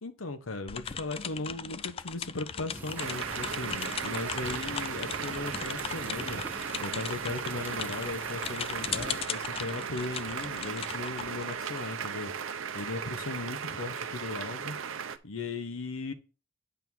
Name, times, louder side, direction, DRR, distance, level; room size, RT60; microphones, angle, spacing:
voice 1, 0.0-6.4 6.8-12.3 12.7-14.8 15.2-16.1, left 3 dB, 85° left, 1.0 m, -37 dB
sound 1, 0.7-12.2, left 7 dB, 30° left, 0.3 m, -39 dB
sound 2, 2.7-9.2, right 1 dB, 10° right, 1.1 m, -44 dB
sound 3, 3.0-15.2, right 7 dB, 80° right, 0.6 m, -36 dB
9.1 x 3.5 x 6.1 m
head